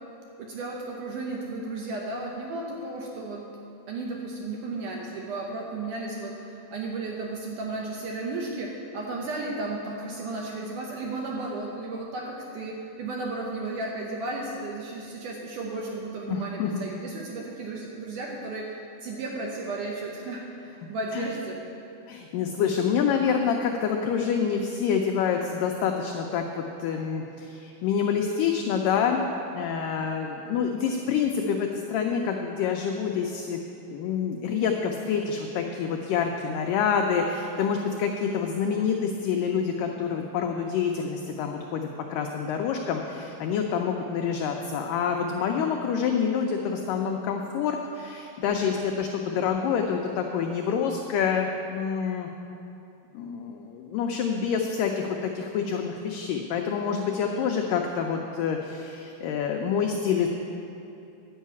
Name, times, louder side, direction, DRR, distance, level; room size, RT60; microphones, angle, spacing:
voice 1, 0.4-3.6 3.9-21.6, right 2 dB, 70° right, -2 dB, 2.0 m, -34 dB
voice 2, 16.3-16.8 21.1-21.3 22.1-29.3 29.5-33.6 33.9-52.3 53.1-60.3, left 6 dB, 85° left, 2 dB, 1.9 m, -27 dB
10.0 x 5.6 x 8.3 m, 2.8 s
omnidirectional pair, 4.5 m